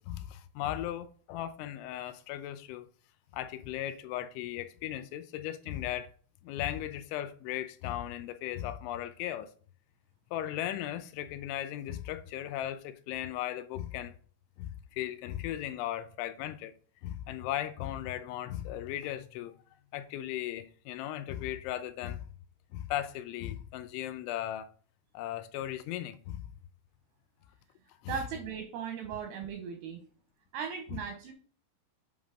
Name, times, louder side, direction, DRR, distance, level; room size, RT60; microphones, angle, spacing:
voice 1, 0.0-2.9 3.3-6.1 6.4-9.5 10.3-14.1 14.6-16.7 17.0-19.6 19.9-22.3 22.7-24.7 25.1-26.4 28.0-28.2, left 12 dB, 80° left, 2.9 m, -37 dB
voice 2, 28.1-30.0 30.5-31.3, right 7 dB, 80° right, 2.4 m, -37 dB
7.8 x 3.7 x 5.0 m
omnidirectional pair, 5.6 m